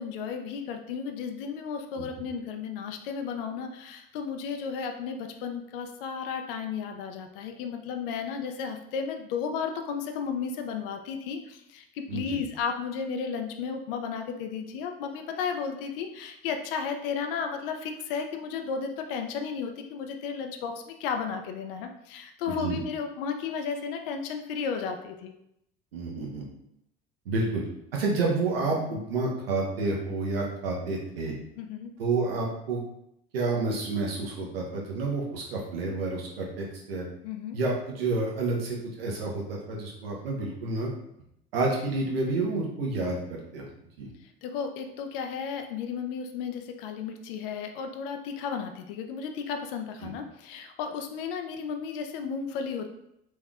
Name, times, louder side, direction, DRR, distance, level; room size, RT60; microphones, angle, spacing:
voice 1, 0.0-25.3 31.6-31.9 37.2-37.6 44.2-52.9, left 6 dB, 75° left, 6 dB, 0.5 m, -34 dB
voice 2, 12.1-12.4 22.5-22.8 25.9-26.4 27.3-27.6 27.9-31.3 32.0-32.8 33.3-37.0 37.5-40.9 41.5-43.6 44.0-44.1 50.0-50.1, right 3 dB, 85° right, -2 dB, 0.9 m, -29 dB
3.4 x 3.1 x 2.4 m, 0.79 s
hypercardioid pair, 65°, 29 cm